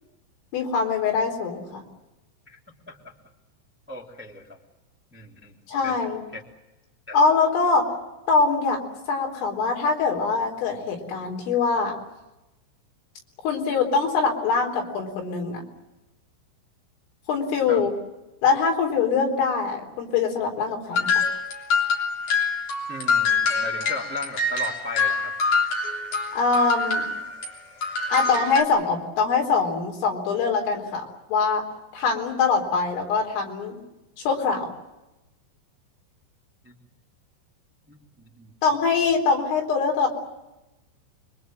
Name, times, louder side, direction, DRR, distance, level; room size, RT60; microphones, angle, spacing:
voice 1, 0.5-1.8 5.7-6.2 7.1-7.9 8.3-8.8 9.1-11.9 13.4-15.6 17.3-17.9 18.4-21.1 26.4-27.1 28.1-31.6 31.9-33.8 34.2-34.7 38.6-40.1, left 4 dB, 80° left, 1 dB, 6.4 m, -23 dB
voice 2, 3.9-4.6 5.1-5.5 5.8-6.0 6.3-6.4 7.1-7.2 17.7-17.8 22.9-25.4 36.6-36.7 37.9-38.5, left 2 dB, 5° right, -1 dB, 1.1 m, -37 dB
sound 1, 20.9-27.5 27.8-28.6, left 4 dB, 40° left, 4.5 m, -25 dB
26.5 x 23.5 x 7.5 m, 0.99 s
omnidirectional pair, 5.8 m